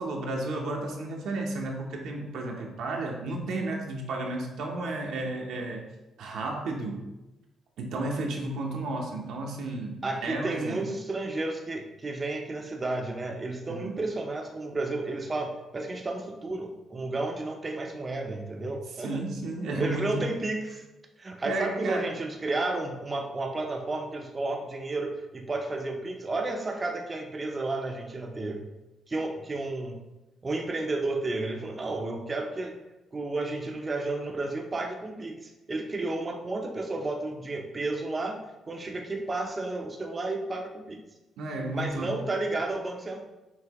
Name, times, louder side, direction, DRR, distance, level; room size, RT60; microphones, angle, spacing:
voice 1, 0.0-5.8 6.2-7.0 7.8-10.9 13.7-14.0 19.0-20.3 21.4-22.2 41.4-42.2, right 2 dB, 75° right, 0 dB, 0.8 m, -33 dB
voice 2, 10.0-19.2 19.6-20.8 21.2-28.6 29.1-30.0 30.4-32.8 33.1-38.4 38.7-41.0 41.7-43.2, right 2 dB, 30° right, 1 dB, 0.5 m, -32 dB
5.7 x 2.7 x 2.9 m, 1.0 s
cardioid pair, 90°, 0 cm